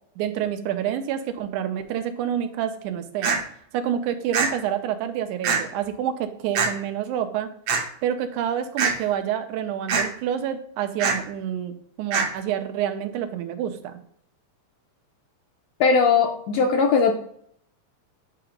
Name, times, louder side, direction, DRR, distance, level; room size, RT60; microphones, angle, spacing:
voice 1, 0.2-3.4 3.7-7.5 8.0-14.0, right 9 dB, 85° right, 8 dB, 2.1 m, -28 dB
sound 1, 3.2-3.4 4.3-4.5 5.4-5.6 6.5-6.7 7.7-7.8 8.8-9.0 9.9-10.0 11.0-11.2 12.1-12.3, right 5 dB, 65° right, 1.5 m, -22 dB
voice 2, 15.8-17.1, left 5 dB, 75° left, 3 dB, 1.6 m, -19 dB
8.4 x 2.9 x 4.9 m, 0.64 s
omnidirectional pair, 3.5 m